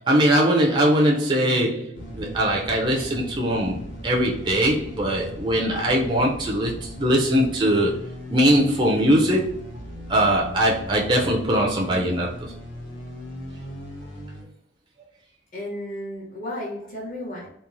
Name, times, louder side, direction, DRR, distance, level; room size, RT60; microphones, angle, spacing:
voice 1, 0.0-9.7 10.1-12.5, equal, 25° right, -1 dB, 0.3 m, -21 dB
sound 1, 1.9-14.4, equal, 80° left, 0.7 m, -38 dB
voice 2, 15.5-17.5, left 1 dB, 45° left, -4 dB, 1.0 m, -33 dB
2.9 x 2.0 x 2.5 m, 0.68 s
head